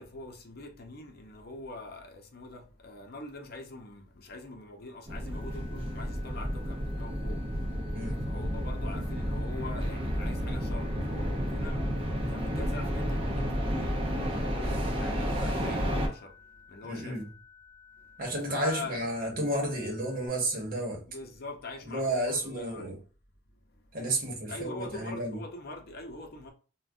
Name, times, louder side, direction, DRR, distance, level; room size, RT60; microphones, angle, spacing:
voice 1, 0.0-7.4 8.3-11.9 12.3-16.3 16.7-17.2 18.5-19.0 21.1-22.9 24.5-26.5, left 3 dB, 55° left, 0.6 m, -43 dB
sound 1, 5.1-16.1, equal, 30° right, 0.6 m, -31 dB
sound 2, 5.3-20.3, left 6 dB, 10° right, 1.2 m, -56 dB
voice 2, 7.9-8.2 16.8-17.2 18.2-21.0 21.9-23.0 23.9-25.4, right 1 dB, 50° right, 1.0 m, -32 dB
2.5 x 2.2 x 3.5 m
head